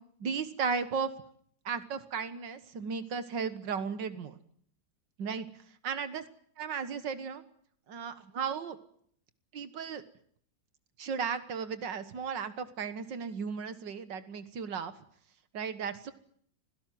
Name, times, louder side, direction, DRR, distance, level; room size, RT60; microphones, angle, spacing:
voice 1, 0.2-1.1 1.7-4.4 5.2-5.5 5.8-6.2 6.6-7.4 7.9-8.8 9.5-10.0 11.0-14.9 15.5-16.1, right 6 dB, 75° right, 12 dB, 2.1 m, -35 dB
25.5 x 17.0 x 9.4 m, 0.65 s
omnidirectional pair, 2.0 m